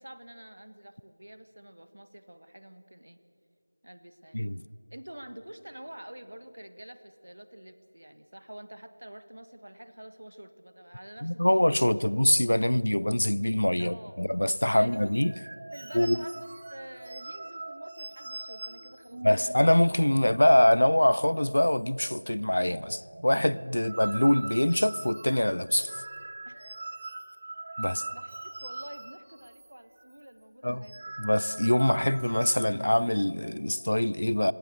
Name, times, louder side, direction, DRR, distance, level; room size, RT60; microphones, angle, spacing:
voice 1, 0.0-3.2 3.8-4.4 4.9-12.1 13.8-14.2 14.6-15.3 15.7-19.5 23.8-23.9 26.4-26.7 28.1-31.2, right 1 dB, 65° right, 1.5 m, -48 dB
voice 2, 11.2-15.3 15.9-16.2 19.2-26.0 27.8-28.0 30.6-30.8 31.2-34.5, left 1 dB, 65° left, 0.6 m, -24 dB
sound 1, 14.9-20.8 21.1-21.3 21.5-22.1 22.4-29.7 30.0-30.2 30.7-32.7, right 2 dB, 30° right, 1.1 m, -42 dB
26.0 x 17.5 x 6.9 m
figure-of-eight pair, 175°, 0 cm